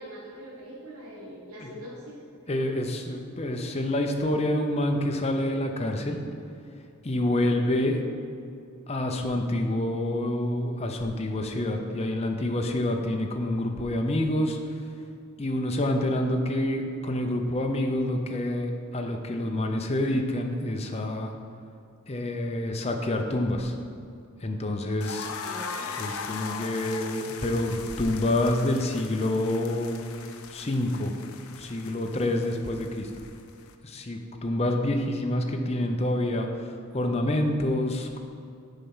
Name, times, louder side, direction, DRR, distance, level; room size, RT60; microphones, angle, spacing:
voice 1, 0.0-2.2 25.2-25.9, equal, 90° right, -4 dB, 1.3 m, -43 dB
voice 2, 2.5-6.2 7.0-8.0 8.9-14.6 15.4-21.3 22.1-23.7 24.4-25.3 26.0-30.0 30.5-31.1 31.6-33.1 33.8-36.7 36.9-38.3, left 1 dB, 30° left, 3 dB, 0.6 m, -27 dB
sound 1, 25.0-33.7, left 5 dB, 80° left, 0.5 m, -40 dB
7.0 x 4.5 x 5.5 m, 2.5 s
head